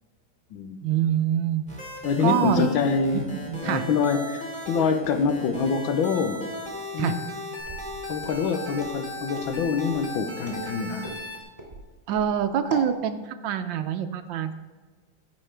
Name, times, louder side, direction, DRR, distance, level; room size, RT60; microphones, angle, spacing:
voice 1, 0.8-1.7 2.2-2.7 3.5-3.8 7.0-7.1 12.1-14.5, right 9 dB, 75° right, 9 dB, 1.2 m, -25 dB
sound 1, 1.7-11.4, left 1 dB, 5° left, 2.1 m, -37 dB
voice 2, 2.0-6.4 6.9-7.2 8.1-11.2, left 5 dB, 75° left, 7 dB, 1.5 m, -25 dB
Walk footsteps, 7.6-12.9, equal, 20° right, 2.3 m, -40 dB
15.0 x 5.6 x 3.3 m, 1.4 s
omnidirectional pair, 2.2 m